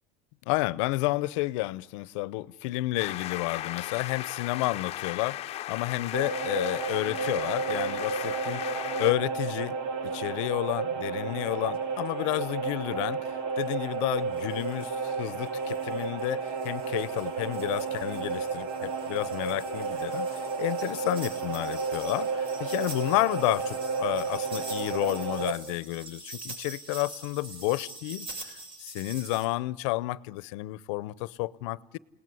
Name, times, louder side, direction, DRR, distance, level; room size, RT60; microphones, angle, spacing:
voice 1, 0.5-8.6 9.0-9.8 10.0-32.0, left 19 dB, 85° left, 0.8 m, -31 dB
sound 1, 3.0-9.1, left 13 dB, 40° left, 0.8 m, -37 dB
sound 2, 6.1-25.5, right 5 dB, 80° right, 2.7 m, -32 dB
sound 3, 11.4-11.5 11.7-11.8 12.1-12.2 13.6-13.7 14.3-29.5, right 2 dB, 35° right, 7.0 m, -45 dB
29.0 x 18.5 x 9.7 m
cardioid pair, 140°, 16 cm